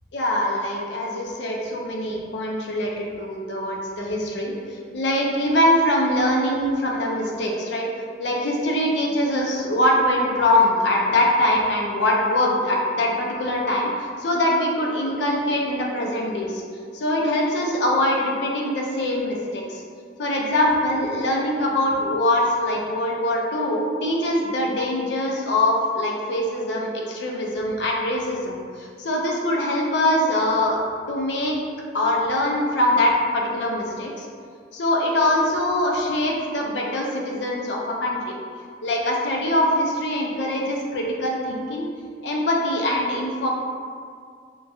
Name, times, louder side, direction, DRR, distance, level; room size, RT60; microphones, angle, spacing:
voice 1, 0.1-7.9 8.2-16.6 16.9-19.8 20.2-30.8 31.1-31.6 31.9-34.3 34.7-38.3 38.8-41.9 42.2-43.5, left 1 dB, 65° left, -1 dB, 0.5 m, -23 dB
3.0 x 2.3 x 2.6 m, 2.1 s
head